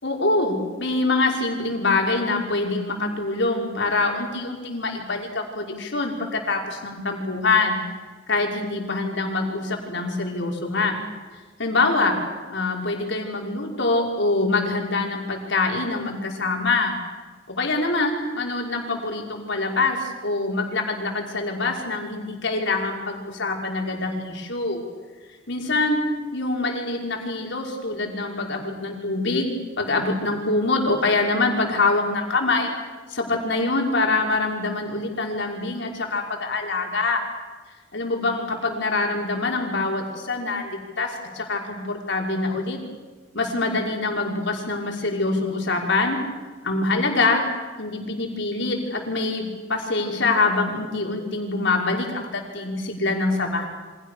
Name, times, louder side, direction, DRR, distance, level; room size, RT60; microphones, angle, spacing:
voice 1, 0.0-7.8 8.3-10.9 11.3-12.2 12.5-17.0 17.5-24.8 25.5-26.0 26.3-32.7 33.1-37.2 37.9-42.8 43.3-46.2 46.6-47.5 47.8-53.7, left 3 dB, 65° left, 1 dB, 5.9 m, -24 dB
29.5 x 25.5 x 6.8 m, 1.4 s
head